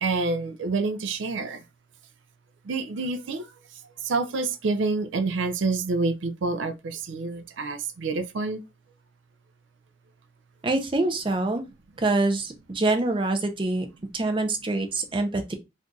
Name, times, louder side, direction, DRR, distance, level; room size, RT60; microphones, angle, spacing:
voice 1, 0.0-1.6 2.6-3.5 4.0-8.6, right 3 dB, 85° right, 0.4 m, -27 dB
voice 2, 10.6-11.6 12.0-13.9 14.1-15.5, right 2 dB, 25° right, 0.5 m, -25 dB
2.5 x 2.3 x 3.8 m
head